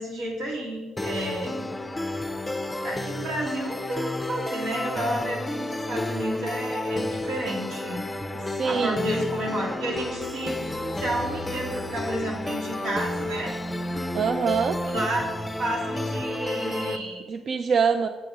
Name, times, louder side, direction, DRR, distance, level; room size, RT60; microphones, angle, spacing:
voice 1, 0.0-1.5 2.8-8.0 8.6-10.6 11.0-13.5 14.9-15.2 15.6-17.2, right 1 dB, 85° right, -3 dB, 2.2 m, -31 dB
sound 1, 1.0-17.0, left 1 dB, 10° left, 0.5 m, -31 dB
voice 2, 8.4-9.1 14.1-14.8 17.3-18.1, right 6 dB, 55° right, 8 dB, 0.3 m, -24 dB
7.9 x 4.6 x 5.0 m, 1.4 s
cardioid pair, 90°, 0 cm